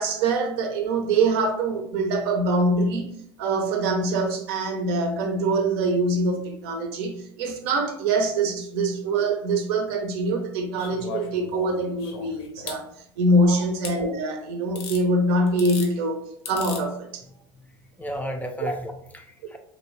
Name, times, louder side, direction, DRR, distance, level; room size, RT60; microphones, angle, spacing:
voice 1, 0.0-3.1 3.4-12.9 13.2-16.2 16.5-17.2 18.6-18.7, right 2 dB, 65° right, 0.6 m, -24 dB
Single Action Revolver Cylinder Spinning, 10.8-12.8 13.8-14.0 14.8-15.0 15.5-15.9 16.5-16.8 18.1-18.2, left 5 dB, 75° left, 0.7 m, -36 dB
voice 2, 18.0-19.6, equal, 10° left, 0.4 m, -34 dB
2.8 x 2.6 x 3.1 m
hypercardioid pair, 90°, 14 cm